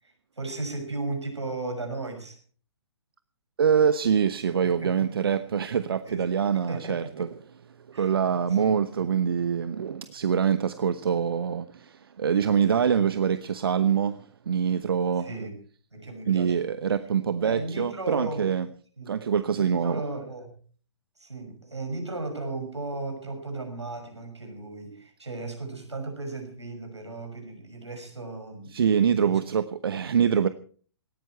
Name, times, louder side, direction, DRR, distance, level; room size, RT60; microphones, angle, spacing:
voice 1, 0.0-2.4 4.6-5.1 6.0-6.2 6.7-7.3 7.9-9.0 12.4-12.6 15.2-15.6 15.9-16.6 17.4-18.5 19.0-19.2 19.6-20.5 21.2-28.9 29.2-29.4, right 2 dB, 80° right, 6.4 m, -36 dB
voice 2, 3.6-7.3 7.9-15.3 16.3-18.7 19.1-20.0 28.7-30.5, right 7 dB, 55° right, 0.9 m, -25 dB
18.5 x 15.0 x 4.5 m
figure-of-eight pair, 125°, 14 cm